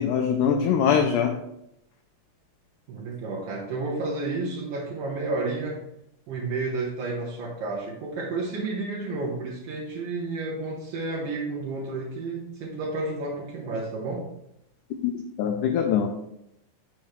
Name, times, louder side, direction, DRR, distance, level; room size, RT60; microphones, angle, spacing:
voice 1, 0.0-1.4 15.0-16.1, left 7 dB, 85° left, 4 dB, 1.8 m, -23 dB
voice 2, 2.9-5.8 6.3-14.3, right 3 dB, 70° right, -5 dB, 2.6 m, -31 dB
7.3 x 6.7 x 3.2 m, 0.80 s
omnidirectional pair, 4.3 m